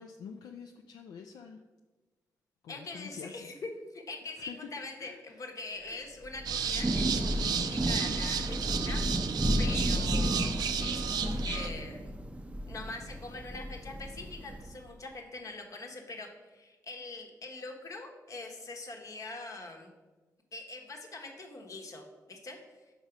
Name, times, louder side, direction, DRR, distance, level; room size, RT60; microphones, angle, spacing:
voice 1, 0.0-1.6 2.6-3.5 4.4-4.7 5.0-5.4 5.8-6.0, left 6 dB, 80° left, 3 dB, 0.4 m, -47 dB
voice 2, 2.7-9.0 9.6-12.1 12.7-19.9 20.5-22.6, left 3 dB, 55° left, 2 dB, 1.1 m, -43 dB
Thunder / Rain, 6.2-14.8, equal, 15° right, 0.5 m, -33 dB
sound 1, 6.4-11.7, right 8 dB, 75° right, 0.4 m, -33 dB
6.0 x 4.1 x 4.9 m, 1.2 s
cardioid pair, 65°, 7 cm